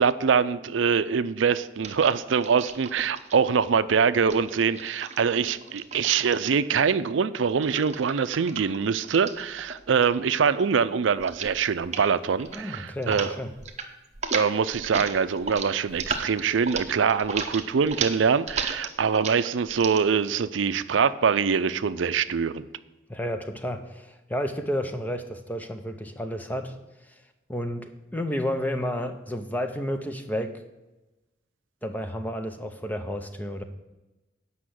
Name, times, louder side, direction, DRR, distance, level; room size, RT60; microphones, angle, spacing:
voice 1, 0.0-13.3 14.3-22.7, right 6 dB, 90° right, 14 dB, 0.5 m, -24 dB
sound 1, 1.8-3.3 4.2-6.7 7.6-10.1 10.4-10.8 11.2-11.6 11.8-12.1 12.4-13.3 13.6-13.9 14.1-20.0, right 5 dB, 35° right, 0.8 m, -34 dB
voice 2, 12.5-13.5 23.1-27.2 27.5-30.6 31.8-33.6, equal, 10° left, 7 dB, 0.6 m, -31 dB
8.4 x 5.6 x 7.6 m, 1.1 s
head